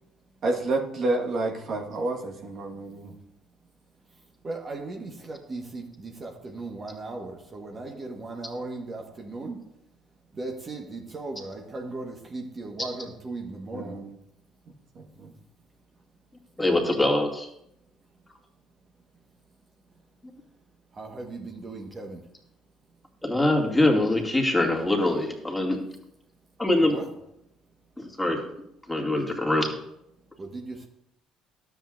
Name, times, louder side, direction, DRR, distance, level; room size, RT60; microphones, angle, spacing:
voice 1, 0.4-3.2 13.7-14.1 14.9-15.3, right 2 dB, 50° right, 0 dB, 1.5 m, -29 dB
voice 2, 4.1-9.6 10.3-14.0 20.9-22.3 26.8-27.1 29.2-29.3 30.4-30.9, right 2 dB, 35° right, 1 dB, 1.4 m, -37 dB
voice 3, 16.6-17.5 23.2-25.8 26.6-27.0 28.0-28.4 28.9-29.7, left 1 dB, 10° left, 0 dB, 2.3 m, -23 dB
12.5 x 7.7 x 2.6 m, 0.79 s
hypercardioid pair, 55°, 0 cm